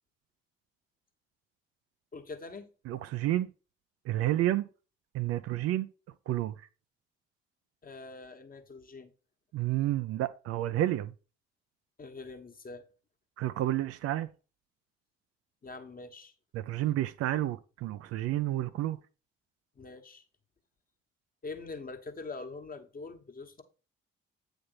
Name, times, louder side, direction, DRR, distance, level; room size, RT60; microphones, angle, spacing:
voice 1, 2.1-2.7 7.8-9.1 12.0-12.9 15.6-16.3 19.7-20.2 21.4-23.6, left 3 dB, 30° left, 1.3 m, -44 dB
voice 2, 2.9-3.5 4.1-4.6 5.1-5.9 6.3-6.5 9.5-11.1 13.4-14.3 16.5-19.0, right 14 dB, 50° right, 0.5 m, -30 dB
8.6 x 3.5 x 5.5 m
figure-of-eight pair, 45°, 31 cm